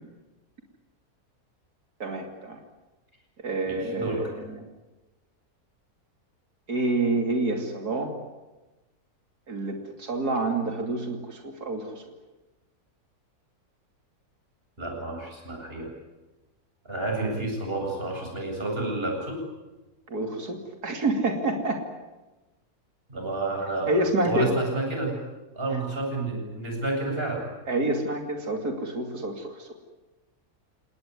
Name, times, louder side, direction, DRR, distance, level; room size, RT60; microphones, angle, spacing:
voice 1, 2.0-2.6 3.4-4.6 6.7-8.1 9.5-12.0 20.1-21.8 23.9-24.5 27.7-29.7, right 2 dB, 80° right, 3 dB, 3.3 m, -28 dB
voice 2, 3.7-4.2 14.8-15.9 16.8-19.4 23.1-23.9 24.2-25.2 25.5-27.4, right 2 dB, 35° right, 1 dB, 8.4 m, -30 dB
30.0 x 18.5 x 9.8 m, 1.1 s
omnidirectional pair, 1.6 m